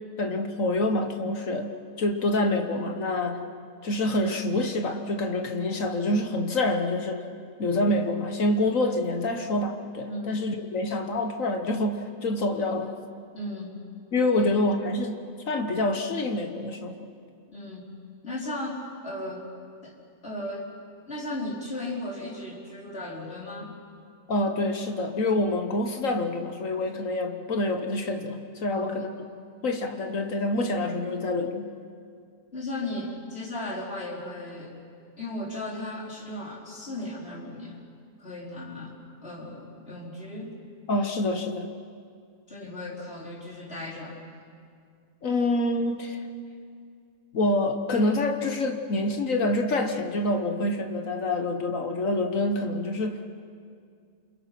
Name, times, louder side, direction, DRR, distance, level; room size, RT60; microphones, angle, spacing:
voice 1, 0.2-1.7 2.0-3.4 3.8-7.3 7.6-12.9 14.1-15.2 15.5-17.1 24.3-29.1 29.6-31.7 40.9-41.7 45.2-46.2 47.3-53.4, left 2 dB, 60° left, 6 dB, 1.5 m, -26 dB
voice 2, 10.1-10.5 13.3-13.8 14.4-14.5 17.5-17.9 18.2-19.5 19.8-20.0 20.2-20.7 21.1-23.8 28.7-29.1 32.5-34.8 35.2-37.8 38.2-40.5 42.5-44.2, left 1 dB, 40° left, -7 dB, 4.7 m, -36 dB
29.0 x 26.5 x 5.9 m, 2.2 s
omnidirectional pair, 1.6 m